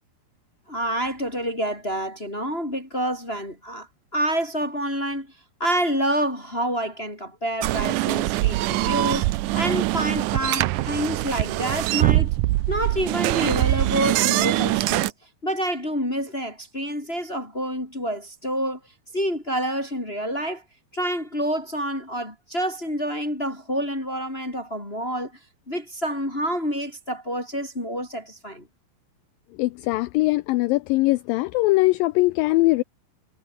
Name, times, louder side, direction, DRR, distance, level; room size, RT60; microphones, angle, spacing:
voice 1, 0.7-3.9 4.1-5.3 5.6-9.2 9.5-12.3 12.7-15.1 15.4-18.8 19.1-20.6 20.9-25.3 25.7-28.6, equal, 15° left, 5.2 m, -28 dB
sound 1, 7.6-15.1, right 18 dB, 80° right, 1.8 m, -23 dB
voice 2, 29.6-32.8, left 20 dB, 80° left, 2.2 m, -21 dB
omnidirectional pair, 4.4 m